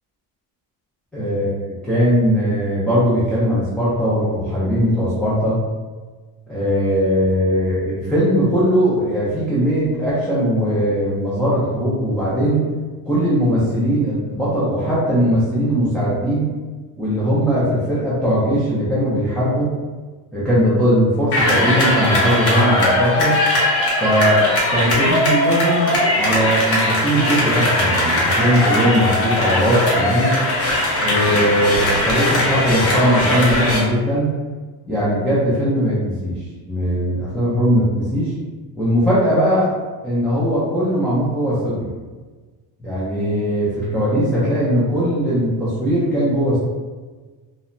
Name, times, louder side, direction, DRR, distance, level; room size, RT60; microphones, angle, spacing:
voice 1, 1.1-5.6 6.5-12.6 13.1-16.5 17.0-19.7 20.3-23.4 24.0-30.3 31.0-34.3 34.9-38.3 38.8-39.7 40.0-41.9 42.8-46.6, equal, 5° left, -11 dB, 0.4 m, -19 dB
sound 1, 21.3-33.8, left 1 dB, 40° left, 0.7 m, -19 dB
2.8 x 2.1 x 2.5 m, 1.4 s
cardioid pair, 155°, 36 cm